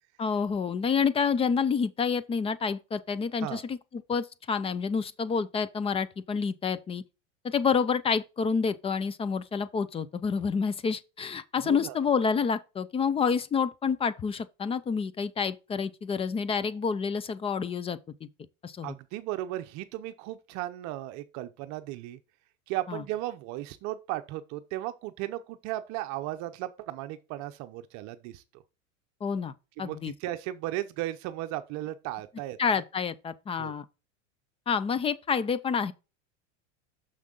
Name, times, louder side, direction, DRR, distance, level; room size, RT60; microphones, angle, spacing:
voice 1, 0.2-7.0 7.4-18.3 18.6-18.9 22.9-23.0 29.2-29.5 29.8-30.1 32.6-33.8 34.7-35.9, left 6 dB, 15° left, 0.4 m, -28 dB
voice 2, 11.6-12.0 18.8-22.2 22.7-28.6 29.8-32.8 33.6-33.7, right 15 dB, 50° right, 0.7 m, -36 dB
6.5 x 5.8 x 3.8 m
hypercardioid pair, 110°, 37 cm